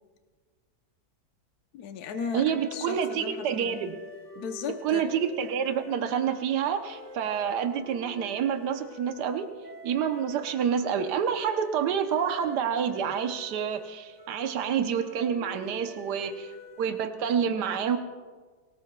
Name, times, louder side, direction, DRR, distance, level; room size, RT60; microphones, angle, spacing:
voice 1, 1.7-3.8 4.4-5.1, left 6 dB, 70° left, 6 dB, 1.3 m, -36 dB
sound 1, 2.1-17.2, left 2 dB, 5° left, 5.3 m, -47 dB
voice 2, 2.3-4.0 4.8-9.5 9.8-18.0, right 8 dB, 80° right, 6 dB, 1.4 m, -28 dB
24.0 x 18.5 x 2.3 m, 1.5 s
omnidirectional pair, 1.8 m